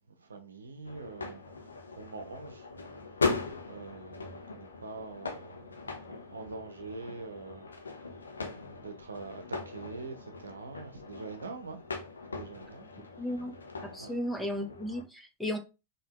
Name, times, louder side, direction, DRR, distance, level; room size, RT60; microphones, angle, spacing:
voice 1, 0.1-1.7 2.0-2.9 3.6-7.7 8.5-11.8 12.3-12.9 14.0-14.1, right 4 dB, 75° right, 1.0 m, -44 dB
sound 1, 0.8-15.0, left 4 dB, 75° left, 0.9 m, -39 dB
voice 2, 13.2-13.5 13.8-15.6, equal, ahead, 1.0 m, -34 dB
5.6 x 3.0 x 3.1 m
figure-of-eight pair, 90°, 0 cm